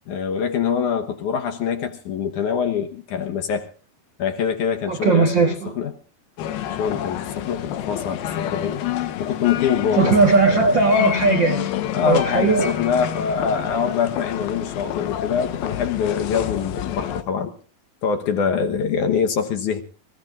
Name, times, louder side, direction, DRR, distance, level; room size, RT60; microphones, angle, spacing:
voice 1, 0.1-3.7 4.2-5.5 5.7-5.9 6.8-8.8 9.2-10.2 10.5-10.8 11.8-17.5 18.0-19.8, left 7 dB, 65° left, 2.3 m, -24 dB
voice 2, 4.9-5.7 10.0-11.7 12.0-12.7, right 3 dB, 65° right, 1.1 m, -18 dB
sound 1, 6.4-17.2, left 11 dB, 90° left, 2.9 m, -28 dB
25.5 x 15.5 x 2.5 m
omnidirectional pair, 4.3 m